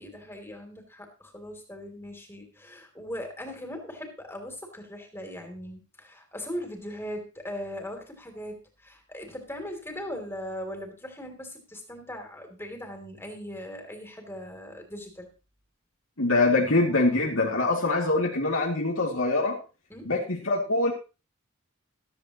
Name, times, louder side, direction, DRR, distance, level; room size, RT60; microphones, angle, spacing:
voice 1, 0.0-15.3 19.9-20.1, equal, 10° left, 3 dB, 3.1 m, -39 dB
voice 2, 16.2-19.6 20.0-20.9, left 2 dB, 70° left, -2 dB, 2.6 m, -24 dB
14.5 x 13.5 x 3.0 m, 0.32 s
head